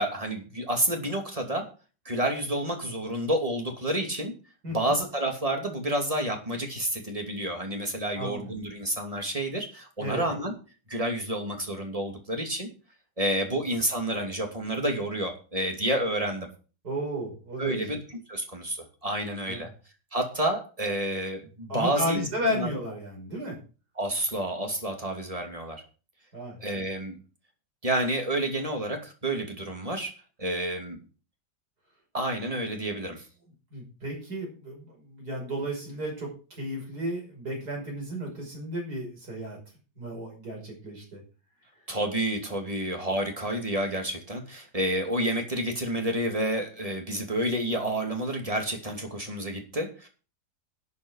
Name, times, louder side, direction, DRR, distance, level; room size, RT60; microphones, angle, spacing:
voice 1, 0.0-1.7 2.0-4.3 4.7-10.5 10.9-12.7 13.2-16.5 17.6-18.0 18.3-19.7 20.1-22.7 24.0-25.8 26.6-27.2 27.8-31.0 32.1-33.2 41.9-50.1, right 1 dB, 20° right, 3 dB, 2.7 m, -29 dB
voice 2, 4.6-4.9 8.1-8.5 10.0-10.3 13.5-13.6 16.8-18.0 19.5-19.7 21.7-23.6 26.3-26.6 33.7-39.6 40.0-41.2, equal, 70° right, 0 dB, 6.3 m, -33 dB
12.0 x 7.1 x 6.4 m, 0.36 s
omnidirectional pair, 1.8 m